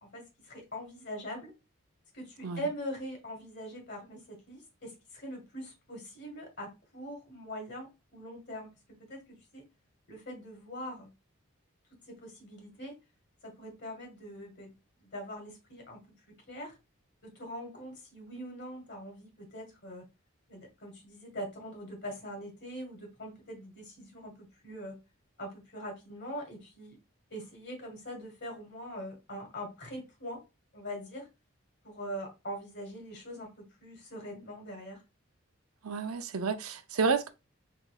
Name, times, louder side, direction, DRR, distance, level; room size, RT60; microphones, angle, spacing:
voice 1, 0.0-1.5 2.1-8.7 9.0-9.7 10.1-11.1 12.1-13.0 13.4-14.7 15.0-16.0 16.5-16.8 17.2-20.0 20.5-25.0 25.4-27.0 27.3-30.4 30.7-31.3 31.8-35.0, equal, 50° left, 1.8 m, -42 dB
voice 2, 35.8-37.3, right 5 dB, 90° right, 0.6 m, -30 dB
4.1 x 3.9 x 2.3 m
head